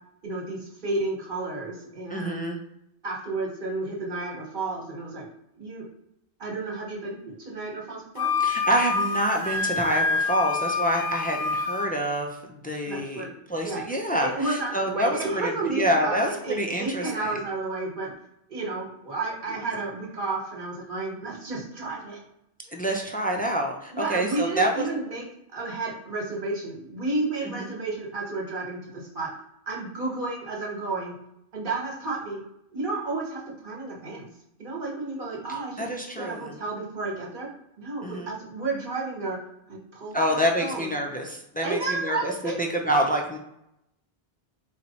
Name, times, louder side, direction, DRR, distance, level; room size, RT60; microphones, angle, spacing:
voice 1, 0.2-2.4 3.0-5.2 5.6-5.8 6.4-8.3 12.9-13.3 13.6-13.8 14.2-18.1 18.5-22.2 23.9-25.2 25.5-29.3 29.7-31.1 31.5-32.4 32.7-34.3 34.6-35.9 36.2-37.5 37.8-39.4 39.7-40.9 41.6-42.5, right 3 dB, 55° right, -3 dB, 1.3 m, -31 dB
voice 2, 2.1-2.6 8.4-17.4 22.7-24.9 27.4-27.7 35.5-36.6 38.0-38.3 40.1-42.3 42.6-43.4, right 1 dB, 15° left, 1 dB, 0.3 m, -27 dB
Wind instrument woodwind instrument, 8.2-11.9, left 4 dB, 70° left, 0.8 m, -27 dB
4.3 x 2.3 x 4.0 m, 0.81 s
omnidirectional pair, 1.1 m